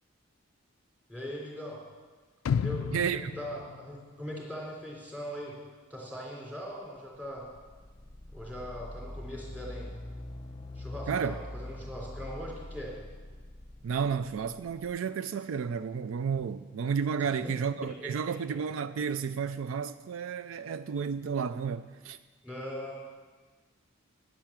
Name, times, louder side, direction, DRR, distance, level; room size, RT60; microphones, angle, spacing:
voice 1, 1.1-1.8 2.5-5.6 5.9-7.4 8.3-9.9 10.8-12.9 17.2-17.3 18.0-18.3 22.4-23.0, equal, 10° right, 3.5 m, -40 dB
sound 1, 2.5-4.6 5.0-5.1, left 7 dB, 85° left, 0.3 m, -33 dB
voice 2, 2.9-3.3 11.1-11.4 13.8-22.2, right 6 dB, 80° right, 0.4 m, -32 dB
sound 2, 7.3-15.0, left 1 dB, 20° left, 0.8 m, -44 dB
10.5 x 9.8 x 7.4 m
head